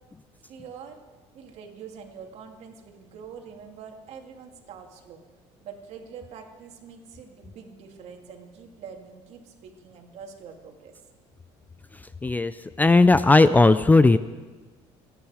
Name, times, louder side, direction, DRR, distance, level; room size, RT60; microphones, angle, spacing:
voice 1, 0.4-1.0 1.3-5.2 5.6-10.9, right 6 dB, 60° right, 3 dB, 2.4 m, -44 dB
voice 2, 12.2-12.5 12.8-14.2, left 3 dB, 15° left, 13 dB, 0.4 m, -16 dB
27.0 x 10.5 x 4.9 m, 1.3 s
cardioid pair, 130°, 13 cm